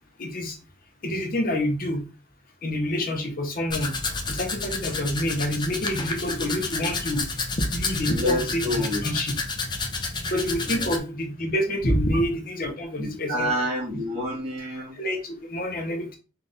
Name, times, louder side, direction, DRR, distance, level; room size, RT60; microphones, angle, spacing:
voice 1, 0.2-0.6 1.0-2.0 2.6-3.9 4.3-7.2 7.6-9.3 10.2-13.5 15.0-16.2, equal, 50° left, 2 dB, 0.9 m, -27 dB
Domestic sounds home sounds, 3.7-11.0, left 3 dB, 25° left, 0.5 m, -30 dB
voice 2, 8.1-9.1 10.7-10.9 13.0-15.0, left 1 dB, 30° right, -5 dB, 1.8 m, -28 dB
4.0 x 2.7 x 3.7 m, 0.33 s
head